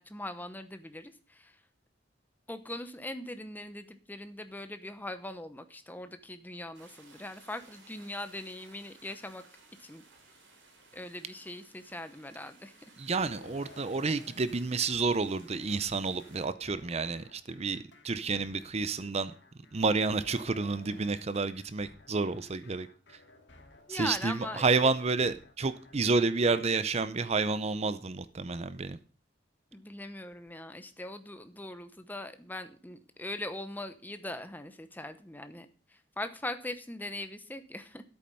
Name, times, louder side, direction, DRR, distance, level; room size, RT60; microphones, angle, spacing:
voice 1, 0.0-1.6 2.5-9.4 9.8-10.0 10.9-12.7 23.9-24.7 29.7-38.0, left 1 dB, 10° left, 10 dB, 0.9 m, -41 dB
sound 1, 6.7-16.5, right 3 dB, 75° right, 3.4 m, -58 dB
voice 2, 13.0-19.3 19.7-22.9 23.9-29.0, right 4 dB, 35° right, 13 dB, 0.6 m, -30 dB
sound 2, 13.2-26.8, left 2 dB, 65° left, 2.0 m, -56 dB
10.5 x 8.7 x 5.5 m, 0.39 s
head